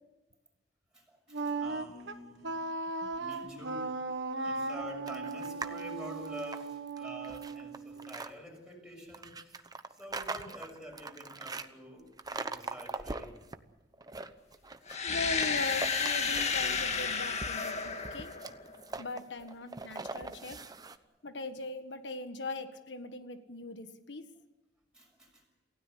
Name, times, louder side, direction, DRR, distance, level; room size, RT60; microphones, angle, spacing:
voice 1, 0.9-2.6 3.2-3.9 4.4-13.4 14.9-15.0 24.9-25.4, equal, 5° right, 1 dB, 6.2 m, -47 dB
Wind instrument woodwind instrument, 1.3-8.3, right 3 dB, 80° right, 1.4 m, -37 dB
sound 1, 5.1-5.8 6.2-8.3 9.1-11.7 12.2-13.6 13.9-15.0 15.4-16.6 16.9-21.0, right 3 dB, 20° right, 1.0 m, -41 dB
sound 2, 14.9-18.8, left 5 dB, 40° left, 1.8 m, -32 dB
voice 2, 15.0-18.3 19.0-20.6 21.2-24.2, left 3 dB, 75° left, 8 dB, 1.5 m, -40 dB
28.0 x 16.5 x 8.1 m, 1.1 s
head